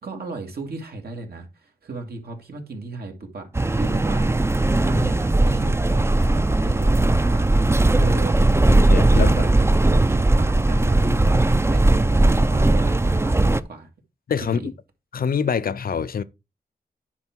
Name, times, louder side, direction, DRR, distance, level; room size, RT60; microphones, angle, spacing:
voice 1, 0.0-3.5 3.7-4.3 4.8-7.5 8.0-8.4 9.1-9.7 10.1-13.9 14.4-14.7, right 3 dB, 75° right, 2.2 m, -35 dB
sound 1, 3.6-13.6, right 2 dB, 15° right, 0.5 m, -18 dB
voice 2, 8.7-9.5 14.3-14.7 15.1-16.2, left 7 dB, 65° left, 0.6 m, -25 dB
9.8 x 4.7 x 4.5 m
wide cardioid pair, 85°, 16 cm